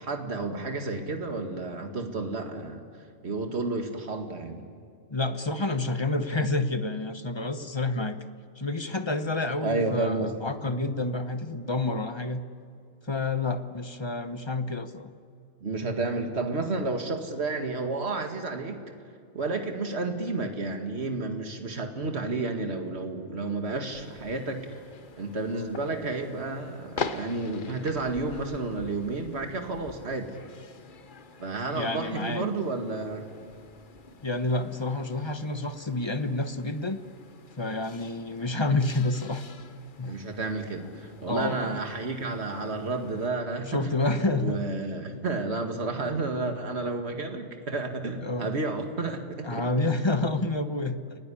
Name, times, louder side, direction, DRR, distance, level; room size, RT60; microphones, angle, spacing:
voice 1, 0.0-2.9 3.2-4.6 9.6-10.4 15.6-18.8 19.3-24.6 25.2-30.3 31.4-33.2 40.0-44.0 44.3-49.6, right 3 dB, 60° right, 4 dB, 2.3 m, -31 dB
voice 2, 5.1-8.2 8.6-12.4 13.1-15.1 31.7-32.5 34.2-37.0 37.6-39.4 40.0-40.2 41.3-41.8 43.7-44.7 45.1-45.2 48.2-48.6 49.4-51.2, left 2 dB, 25° left, 9 dB, 1.1 m, -29 dB
sound 1, 23.9-43.3, left 5 dB, 45° left, 1.1 m, -44 dB
30.0 x 19.0 x 10.0 m, 2.4 s
omnidirectional pair, 1.3 m